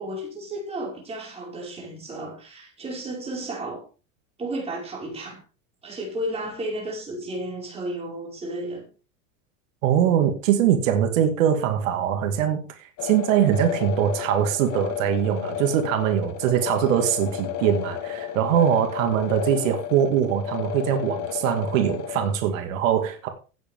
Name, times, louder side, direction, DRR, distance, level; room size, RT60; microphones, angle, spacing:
voice 1, 0.0-3.8 4.4-5.4 5.8-8.9, right 1 dB, 15° right, 5.2 m, -33 dB
voice 2, 9.8-23.3, right 9 dB, 80° right, 2.2 m, -22 dB
sound 1, 13.0-22.3, left 10 dB, 45° left, 2.1 m, -32 dB
16.5 x 8.2 x 3.6 m
supercardioid pair, 155°, 38 cm